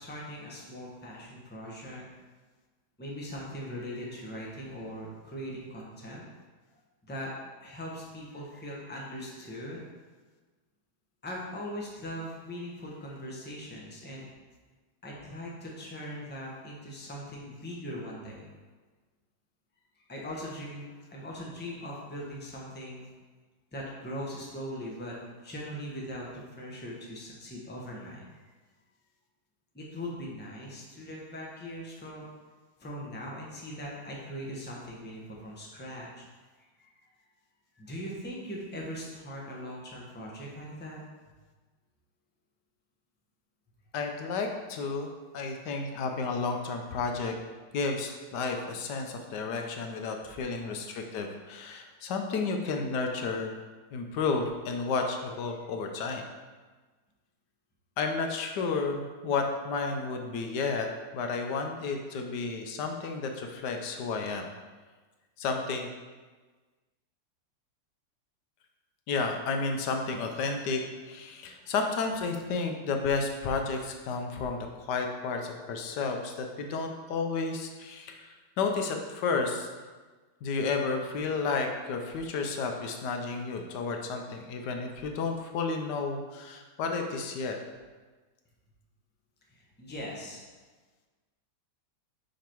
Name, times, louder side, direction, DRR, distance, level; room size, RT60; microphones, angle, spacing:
voice 1, 0.0-2.1 3.0-6.2 7.0-7.3 7.6-9.9 11.2-14.3 15.0-18.5 20.0-20.8 21.1-23.1 23.7-25.2 25.4-28.4 29.7-32.3 32.8-36.2 36.6-36.9 37.8-41.0 89.5-90.5, equal, 10° left, -4 dB, 0.9 m, -40 dB
voice 2, 43.9-45.1 45.3-47.3 47.7-53.5 53.9-56.2 58.0-60.9 61.1-64.5 65.4-65.9 69.1-79.7 80.4-87.6, left 4 dB, 80° left, 4 dB, 1.3 m, -32 dB
5.3 x 5.1 x 4.5 m, 1.3 s
omnidirectional pair, 1.8 m